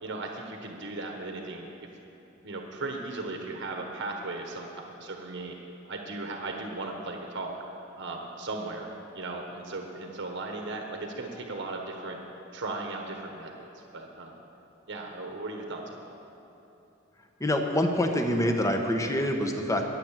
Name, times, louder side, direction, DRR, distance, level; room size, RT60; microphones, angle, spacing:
voice 1, 0.0-1.7 2.4-5.5 5.9-7.6 8.0-8.9 9.1-12.2 12.5-13.7 13.9-14.4 14.9-16.0, right 2 dB, 60° right, 2 dB, 1.3 m, -37 dB
voice 2, 17.4-19.8, left 1 dB, 15° left, 4 dB, 1.2 m, -26 dB
20.5 x 7.7 x 7.5 m, 3.0 s
head